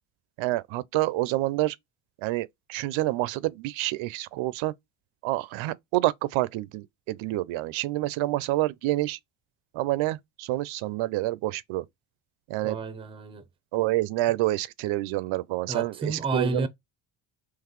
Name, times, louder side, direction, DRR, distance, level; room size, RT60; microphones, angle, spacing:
voice 1, 0.4-1.8 2.2-4.7 5.2-9.2 9.7-11.9 12.5-12.8 13.7-16.7, right 17 dB, 80° right, 0.5 m, -28 dB
voice 2, 12.6-13.5 15.7-16.7, right 3 dB, 10° right, 0.5 m, -30 dB
3.9 x 3.1 x 3.0 m
cardioid pair, 140°, 47 cm